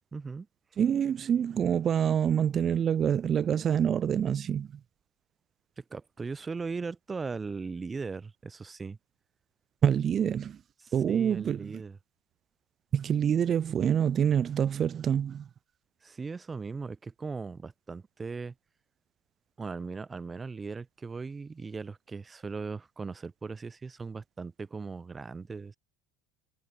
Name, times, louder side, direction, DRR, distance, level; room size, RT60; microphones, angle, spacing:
voice 1, 0.1-0.5 5.8-9.0 10.8-12.0 16.0-18.5 19.6-25.8, right 4 dB, 20° right, 0.9 m, -38 dB
voice 2, 0.8-4.7 9.8-10.6 10.9-11.8 12.9-15.5, right 8 dB, 40° right, 0.5 m, -26 dB
hypercardioid pair, 70°, 0 cm